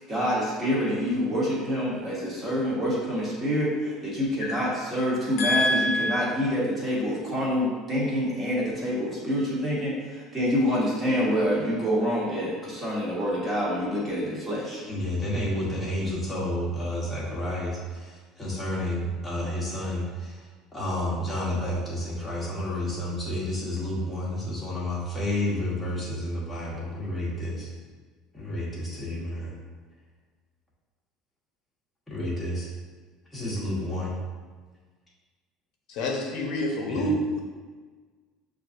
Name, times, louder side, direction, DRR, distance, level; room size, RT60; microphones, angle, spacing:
voice 1, 0.1-14.8, equal, 20° right, -6 dB, 1.1 m, -27 dB
voice 2, 5.4-6.2 35.9-37.4, left 1 dB, 65° left, -1 dB, 0.6 m, -26 dB
voice 3, 14.9-20.4 20.7-27.7 28.3-29.5 32.1-32.7 33.3-34.1 36.9-37.1, left 1 dB, 5° left, -7 dB, 1.0 m, -30 dB
6.2 x 2.5 x 2.5 m, 1.4 s
cardioid pair, 155°, 0 cm